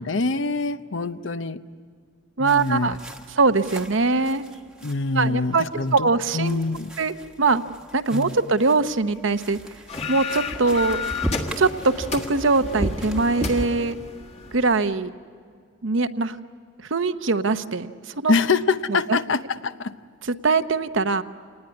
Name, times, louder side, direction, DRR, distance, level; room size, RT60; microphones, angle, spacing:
voice 1, 0.0-1.6 2.4-3.0 4.8-6.1 6.3-6.9 8.1-8.4 18.3-19.9, left 3 dB, 65° left, 12 dB, 0.8 m, -25 dB
sound 1, 2.4-13.7, equal, 5° right, 1.2 m, -36 dB
voice 2, 2.4-2.9 3.3-4.4 5.1-5.6 5.9-6.6 7.0-7.6 7.9-9.6 10.1-11.0 11.6-14.0 14.5-15.1 15.8-16.4 16.8-18.3 19.1-19.2 20.3-21.2, right 3 dB, 65° right, 10 dB, 0.9 m, -22 dB
sound 2, 9.9-14.8, left 4 dB, 30° left, 1.6 m, -32 dB
28.0 x 19.5 x 9.7 m, 2.1 s
head